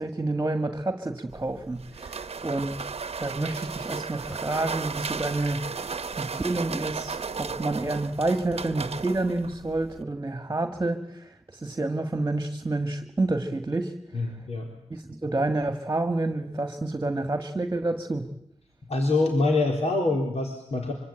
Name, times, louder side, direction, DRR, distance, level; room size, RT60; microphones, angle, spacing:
voice 1, 0.0-2.8 3.2-13.9 14.9-18.3, right 2 dB, 25° right, 7 dB, 1.8 m, -29 dB
sound 1, 1.3-10.0, right 5 dB, 55° right, 1.0 m, -35 dB
voice 2, 14.1-14.8 18.9-20.9, left 2 dB, 65° left, 2 dB, 4.1 m, -25 dB
25.0 x 25.0 x 8.9 m, 0.76 s
wide cardioid pair, 85°, 12 cm